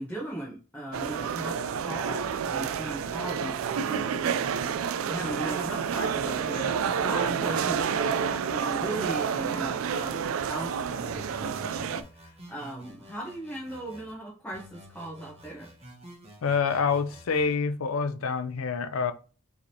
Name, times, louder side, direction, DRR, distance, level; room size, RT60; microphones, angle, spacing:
voice 1, 0.0-10.2 10.5-15.7, right 1 dB, 5° left, 1.1 m, -38 dB
sound 1, 0.9-12.0, right 7 dB, 75° right, 0.4 m, -29 dB
sound 2, 11.1-14.1 14.5-17.5, equal, 30° right, 1.2 m, -49 dB
voice 2, 16.4-19.1, left 5 dB, 80° left, 0.5 m, -27 dB
4.9 x 3.3 x 2.8 m
head